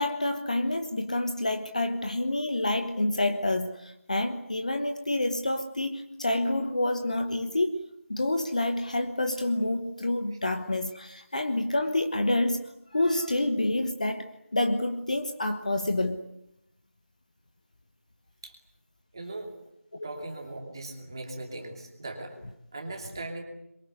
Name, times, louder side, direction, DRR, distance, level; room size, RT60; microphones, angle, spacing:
voice 1, 0.0-12.6 12.9-14.2 14.5-16.2 19.9-20.2, left 2 dB, 30° left, 7 dB, 1.2 m, -28 dB
voice 2, 19.1-19.5 20.0-22.3 22.7-23.4, right 2 dB, 20° right, 2 dB, 2.7 m, -39 dB
26.5 x 23.0 x 8.1 m, 0.80 s
figure-of-eight pair, 175°, 8 cm